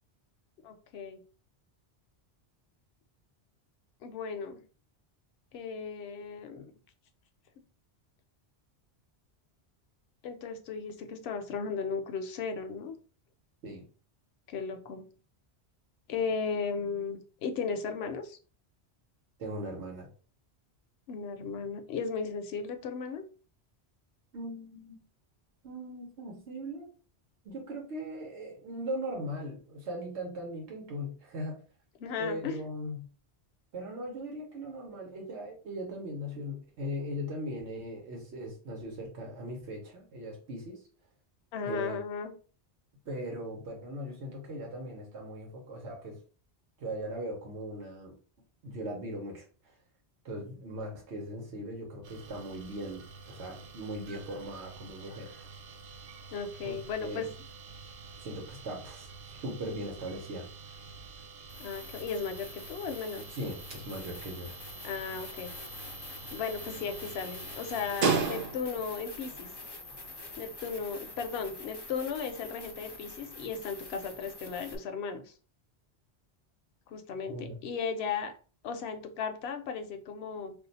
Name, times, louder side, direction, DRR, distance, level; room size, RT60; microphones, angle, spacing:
voice 1, 0.6-1.2 4.0-4.6 5.5-6.7 10.2-13.0 14.5-15.0 16.1-18.4 21.1-23.3 32.0-32.6 41.5-42.3 56.3-57.3 61.6-63.3 64.8-65.5 66.3-69.5 70.3-75.3 76.9-78.3 78.6-80.5, left 5 dB, 75° left, 6 dB, 0.8 m, -36 dB
voice 2, 19.4-20.1 24.3-25.0 25.6-26.9 27.4-31.6 32.2-33.1 33.7-40.8 41.6-42.0 43.1-46.2 46.8-48.1 48.6-49.7 50.2-55.5 56.6-57.2 58.2-60.5 63.3-64.5 77.3-77.6, equal, 90° right, -1 dB, 1.1 m, -39 dB
sound 1, 52.0-68.9, right 5 dB, 60° right, 0.7 m, -40 dB
sound 2, 60.8-60.9 61.5-74.8, left 2 dB, 40° left, 0.4 m, -46 dB
2.5 x 2.3 x 3.9 m, 0.39 s
omnidirectional pair, 1.1 m